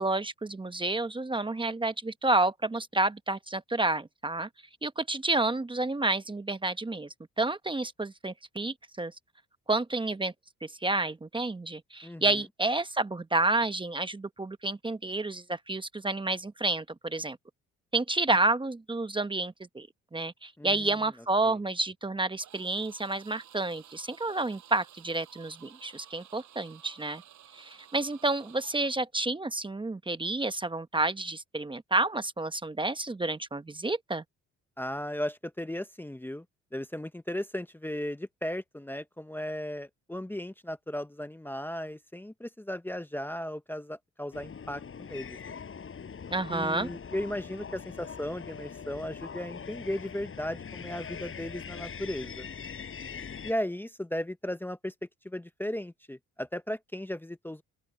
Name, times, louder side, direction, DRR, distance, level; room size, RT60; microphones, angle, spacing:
voice 1, 0.0-4.5 4.8-7.1 7.4-9.1 9.7-10.3 10.6-17.4 17.9-19.9 20.1-27.2 27.5-34.2 46.3-46.9, right 2 dB, 15° right, 1.0 m, -30 dB
voice 2, 12.0-12.4 20.6-21.0 21.5-21.6 34.8-36.4 36.7-45.6 46.5-52.5 53.4-54.9 55.2-57.6, left 1 dB, 5° left, 0.9 m, -36 dB
sound 1, 22.4-29.1, right 11 dB, 70° right, 6.1 m, -54 dB
sound 2, 44.3-53.5, left 6 dB, 45° left, 5.5 m, -42 dB
open air
cardioid pair, 90°, 30 cm